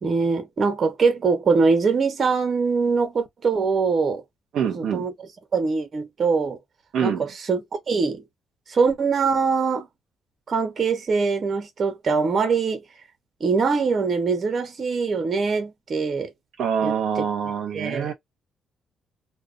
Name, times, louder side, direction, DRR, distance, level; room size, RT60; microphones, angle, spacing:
voice 1, 0.0-4.2 4.7-5.1 5.5-6.6 7.0-8.2 8.7-9.9 10.5-12.8 13.4-16.3 16.8-17.3 17.7-18.1, right 4 dB, 45° right, 0.9 m, -23 dB
voice 2, 4.5-5.0 6.9-7.2 16.6-18.1, right 7 dB, 75° right, 0.6 m, -25 dB
2.4 x 2.2 x 2.4 m
cardioid pair, 90°, 0 cm